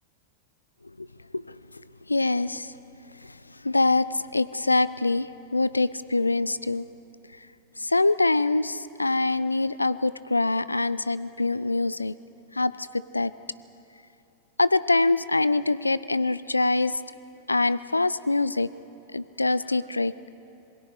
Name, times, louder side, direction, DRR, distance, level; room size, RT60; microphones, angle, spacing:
voice 1, 2.1-2.7 3.2-3.4 3.6-6.9 7.8-12.1 12.5-13.3 14.6-17.0 17.5-18.7 19.1-20.1, left 2 dB, 80° left, 17 dB, 0.4 m, -24 dB
27.0 x 21.0 x 4.9 m, 3.0 s
figure-of-eight pair, 90°, 0 cm